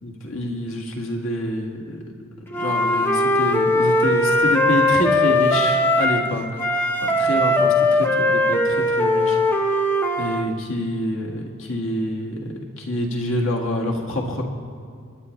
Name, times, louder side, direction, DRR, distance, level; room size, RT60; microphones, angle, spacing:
voice 1, 0.0-2.0 2.5-9.9 10.2-14.4, left 1 dB, 60° left, -1 dB, 1.8 m, -27 dB
Wind instrument woodwind instrument, 2.5-6.3 6.6-10.4, left 1 dB, 10° left, 0.6 m, -19 dB
29.5 x 10.0 x 3.2 m, 2.3 s
head